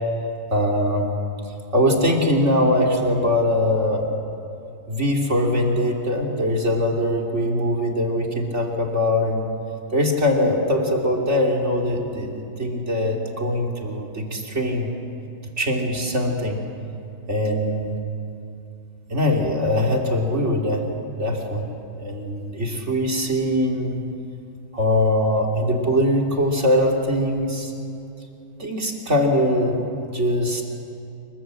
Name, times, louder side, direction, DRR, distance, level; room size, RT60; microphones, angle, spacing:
voice 1, 0.5-1.1 1.7-4.1 4.9-9.5 9.9-14.9 15.4-16.6 17.3-18.0 19.1-20.8 21.2-21.7 21.9-24.0 24.7-27.7 28.6-30.6, left 1 dB, 30° right, 0 dB, 3.2 m, -22 dB
27.0 x 23.5 x 7.9 m, 2.6 s
omnidirectional pair, 2.3 m